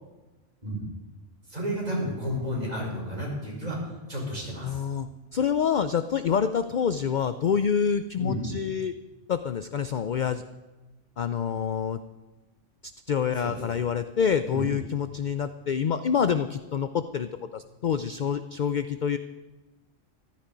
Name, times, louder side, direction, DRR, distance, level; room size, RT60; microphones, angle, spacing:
voice 1, 1.5-4.8 8.2-8.4 13.4-13.8 14.5-14.6, equal, 35° right, -3 dB, 5.0 m, -32 dB
voice 2, 4.6-8.9 9.3-10.4 11.2-12.0 13.1-19.2, left 7 dB, 50° left, 11 dB, 0.6 m, -27 dB
14.5 x 13.0 x 5.2 m, 1.2 s
omnidirectional pair, 1.2 m